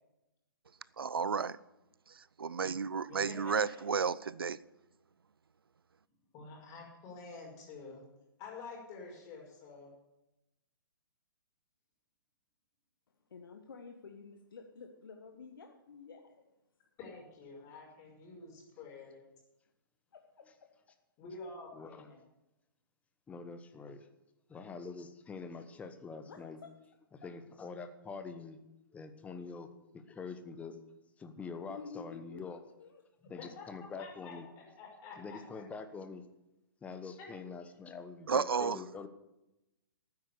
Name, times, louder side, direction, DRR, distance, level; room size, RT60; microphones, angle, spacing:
voice 1, 1.0-1.6 2.4-4.6 38.3-38.8, right 6 dB, 85° right, 0.5 m, -32 dB
voice 2, 3.1-3.8 6.3-8.0 8.4-9.9 17.0-19.2 21.2-22.2 33.4-35.7 37.2-37.5, left 4 dB, 30° left, 5.4 m, -49 dB
voice 3, 13.3-16.5 20.1-20.7 26.2-26.7 27.2-27.3 31.7-33.0, left 5 dB, 70° left, 1.3 m, -51 dB
voice 4, 21.7-22.1 23.3-24.1 24.5-26.6 27.2-28.6 28.9-29.7 29.9-30.8 31.2-32.6 33.3-34.5 35.2-36.2 36.8-39.1, left 4 dB, 10° left, 1.1 m, -45 dB
13.0 x 9.6 x 6.9 m
hypercardioid pair, 130°, 12 cm